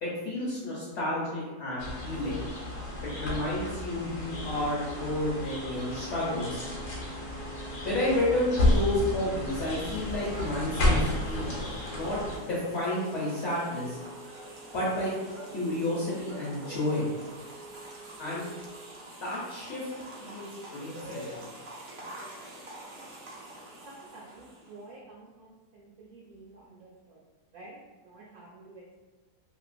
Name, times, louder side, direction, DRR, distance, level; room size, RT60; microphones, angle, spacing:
voice 1, 0.0-2.3 3.0-6.6 7.8-11.5 11.9-14.0 14.7-15.1 15.5-17.1 18.2-18.4 19.2-19.8 20.2-21.5, left 1 dB, 55° left, -7 dB, 0.9 m, -31 dB
sound 1, 1.8-12.4, left 1 dB, 70° left, 1.1 m, -31 dB
sound 2, 4.2-19.1, right 3 dB, 45° right, 0.9 m, -50 dB
sound 3, 9.7-24.9, right 1 dB, 85° right, 0.4 m, -46 dB
voice 2, 23.8-27.2 27.5-29.0, right 2 dB, 70° right, -6 dB, 1.0 m, -50 dB
2.9 x 2.8 x 2.5 m, 1.3 s
omnidirectional pair, 1.7 m